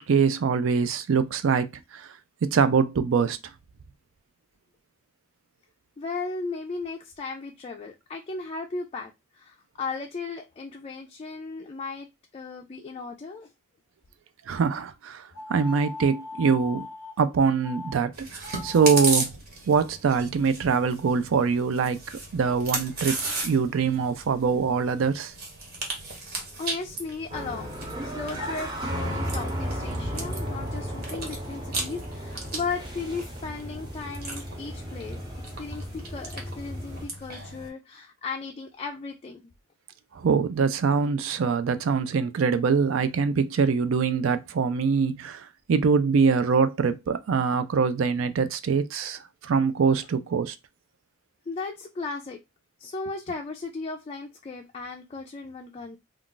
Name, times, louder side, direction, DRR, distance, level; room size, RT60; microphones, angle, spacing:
voice 1, 0.0-1.7 1.9-2.1 2.4-3.4 14.5-16.9 17.2-19.3 19.7-23.2 23.4-25.3 40.1-50.5, right 5 dB, 75° right, 0.4 m, -24 dB
voice 2, 6.0-12.1 12.3-13.5 26.1-27.8 28.0-35.2 35.4-39.4 51.5-52.4 52.8-56.0, left 4 dB, 30° left, 0.3 m, -36 dB
sound 1, 15.3-17.2 17.6-18.0 18.4-19.2, left 3 dB, 10° left, 0.7 m, -40 dB
Chewing mastication, 18.1-37.7, right 3 dB, 50° right, 1.0 m, -36 dB
sound 2, 27.3-37.0, equal, 20° right, 0.8 m, -34 dB
2.4 x 2.3 x 3.7 m
head